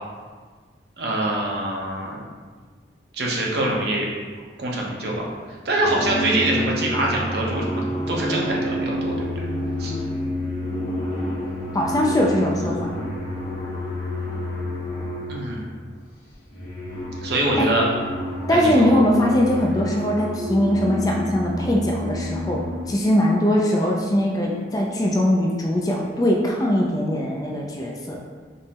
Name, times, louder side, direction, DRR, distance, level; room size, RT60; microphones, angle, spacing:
voice 1, 1.0-2.2 3.1-4.1 4.6-5.3 5.6-9.4 9.8-9.9 15.3-15.6 17.2-17.9 18.5-18.9, right 1 dB, 60° right, -2 dB, 0.7 m, -24 dB
sound 1, 5.0-5.3 5.7-15.8 16.3-22.9, left 1 dB, 65° left, 1.2 m, -29 dB
voice 2, 11.7-12.8 17.6-17.7 18.5-22.6 22.9-28.3, left 1 dB, 20° left, -1 dB, 0.4 m, -21 dB
5.3 x 2.0 x 2.8 m, 1.5 s
head